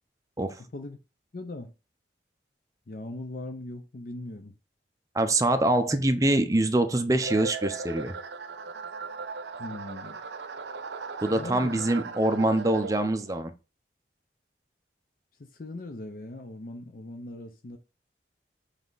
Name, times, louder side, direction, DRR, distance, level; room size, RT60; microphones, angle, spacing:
voice 1, 1.3-1.7 2.9-4.5 9.6-10.2 11.3-11.8 15.4-17.8, left 2 dB, 50° left, 0.6 m, -39 dB
voice 2, 5.1-8.1 11.2-13.5, right 1 dB, 20° right, 0.6 m, -24 dB
sound 1, 7.2-13.4, right 4 dB, 85° right, 0.6 m, -38 dB
7.2 x 3.4 x 4.0 m
head